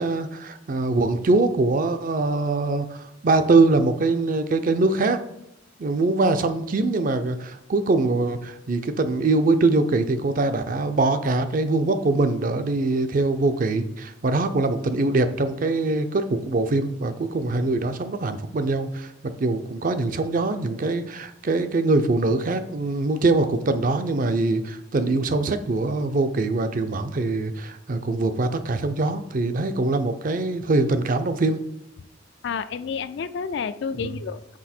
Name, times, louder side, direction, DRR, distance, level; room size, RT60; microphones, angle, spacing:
voice 1, 0.0-5.2 5.8-19.1 19.4-31.6 34.0-34.1, right 3 dB, 45° right, 9 dB, 0.5 m, -23 dB
voice 2, 32.4-34.6, left 6 dB, 60° left, 13 dB, 0.3 m, -30 dB
6.1 x 4.9 x 4.3 m, 0.81 s
head